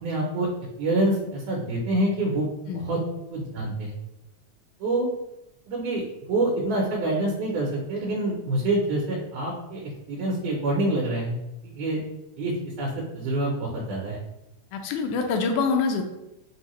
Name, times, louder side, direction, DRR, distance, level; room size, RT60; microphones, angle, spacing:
voice 1, 0.0-0.5 0.8-2.5 2.7-3.0 3.3-3.9 4.8-5.1 5.7-11.4 11.6-12.0 12.4-12.5 12.8-14.2, right 2 dB, 80° right, -1 dB, 2.2 m, -26 dB
voice 2, 14.7-16.0, left 4 dB, 85° left, 4 dB, 2.0 m, -25 dB
6.3 x 2.7 x 3.0 m, 0.92 s
omnidirectional pair, 3.5 m